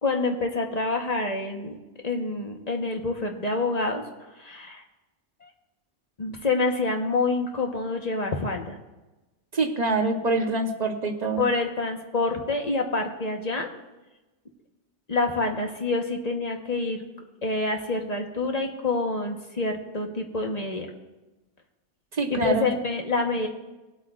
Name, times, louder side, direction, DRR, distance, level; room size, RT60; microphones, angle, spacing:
voice 1, 0.0-1.8 2.0-4.0 4.4-4.8 5.4-5.5 6.2-8.8 11.4-13.7 15.1-17.0 17.4-20.9 22.3-23.5, left 3 dB, 35° left, 2 dB, 1.2 m, -27 dB
voice 2, 9.5-11.5 22.1-22.7, right 3 dB, 40° right, 3 dB, 1.1 m, -25 dB
20.5 x 8.4 x 2.5 m, 1.1 s
omnidirectional pair, 1.2 m